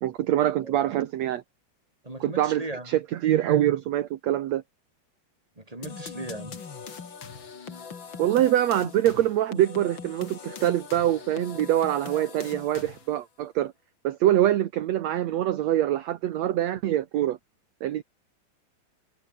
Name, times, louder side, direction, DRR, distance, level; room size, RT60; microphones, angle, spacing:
voice 1, 0.0-1.4 2.2-4.6 8.2-13.7 14.0-17.4 17.8-18.0, right 12 dB, 65° right, 1.8 m, -24 dB
voice 2, 2.0-2.9 5.6-6.6, right 2 dB, 10° right, 4.8 m, -37 dB
sound 1, 5.8-13.2, left 6 dB, 35° left, 2.6 m, -41 dB
omnidirectional pair, 4.3 m